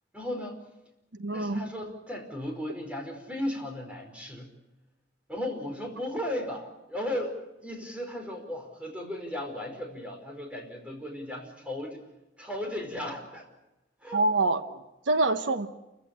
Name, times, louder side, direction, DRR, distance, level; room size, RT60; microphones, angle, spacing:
voice 1, 0.1-0.6 1.3-4.5 5.3-12.0 12.4-13.5 14.0-14.2, left 1 dB, 5° right, 2 dB, 4.9 m, -36 dB
voice 2, 1.2-1.6 14.1-14.8 15.1-15.7, right 2 dB, 85° right, 9 dB, 1.1 m, -25 dB
29.0 x 15.5 x 8.9 m, 0.95 s
head